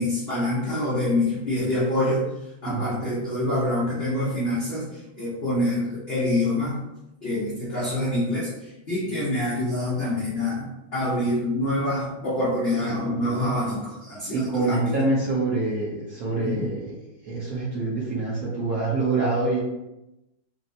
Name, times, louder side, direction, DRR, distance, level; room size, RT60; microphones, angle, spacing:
voice 1, 0.0-2.3 2.6-6.8 7.2-14.9 16.4-16.6, left 1 dB, 70° left, -8 dB, 0.5 m, -26 dB
voice 2, 2.6-3.1 13.0-13.5 14.3-16.9 17.2-19.6, right 2 dB, 60° right, -6 dB, 1.0 m, -26 dB
4.1 x 2.0 x 2.6 m, 0.93 s
omnidirectional pair, 2.1 m